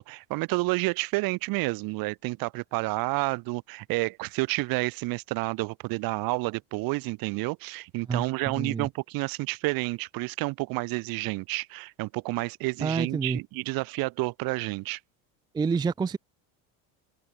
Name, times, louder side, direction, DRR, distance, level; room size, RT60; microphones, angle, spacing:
voice 1, 0.0-15.0, right 23 dB, 65° right, 2.0 m, -30 dB
voice 2, 8.1-8.9 12.8-13.4 15.5-16.2, right 5 dB, 10° right, 0.4 m, -28 dB
cardioid pair, 140°, 38 cm